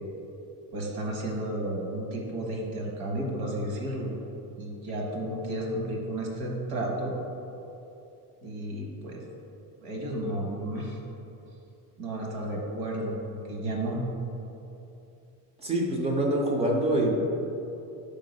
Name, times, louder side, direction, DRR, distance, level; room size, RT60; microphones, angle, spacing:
voice 1, 0.7-4.1 4.6-7.1 8.4-9.2 9.8-11.0 12.0-14.0, right 1 dB, 50° right, 0 dB, 1.2 m, -32 dB
voice 2, 15.6-17.1, right 1 dB, 15° right, 0 dB, 0.3 m, -25 dB
6.0 x 3.7 x 5.2 m, 2.9 s
cardioid pair, 150°, 47 cm